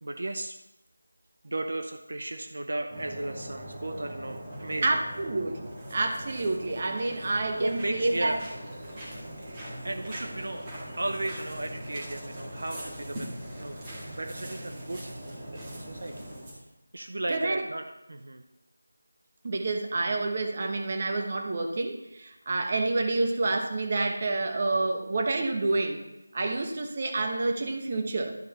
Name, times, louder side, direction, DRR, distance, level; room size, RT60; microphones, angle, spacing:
voice 1, 0.0-0.6 1.4-5.0 7.6-8.4 9.4-10.7 11.0-13.8 14.1-16.3 16.9-18.4, right 2 dB, 60° right, 6 dB, 0.7 m, -35 dB
sound 1, 2.9-16.6, equal, 15° right, 2.2 m, -41 dB
voice 2, 4.8-8.4 17.3-17.6 19.4-26.0 26.3-28.3, right 2 dB, 35° right, 4 dB, 1.2 m, -28 dB
12.0 x 5.2 x 4.2 m, 0.91 s
figure-of-eight pair, 170°, 0 cm